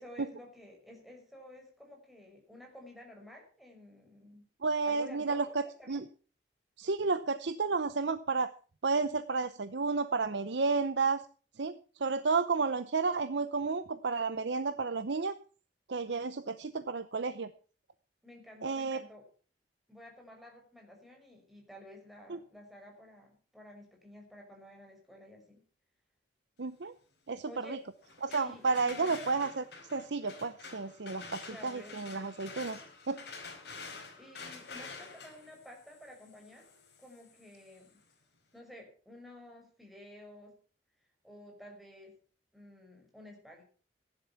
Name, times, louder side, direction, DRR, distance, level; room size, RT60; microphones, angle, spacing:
voice 1, 0.0-4.5 4.8-6.0 18.2-19.2 19.9-25.6 27.5-27.8 28.3-29.2 31.4-32.0 34.2-36.7 37.0-38.0 38.5-40.6 41.2-42.1 42.5-43.6, left 1 dB, ahead, 0 dB, 6.0 m, -52 dB
voice 2, 4.6-6.0 6.8-8.5 8.8-11.2 11.6-11.7 12.0-15.3 15.9-17.5 18.6-19.0 22.3-22.4 26.6-26.9 27.3-27.8 28.2-29.6 29.9-32.8 33.1-33.2, right 4 dB, 75° right, 12 dB, 0.7 m, -32 dB
sound 1, 28.0-37.9, left 4 dB, 65° left, 4.2 m, -48 dB
15.0 x 10.5 x 5.9 m, 0.40 s
head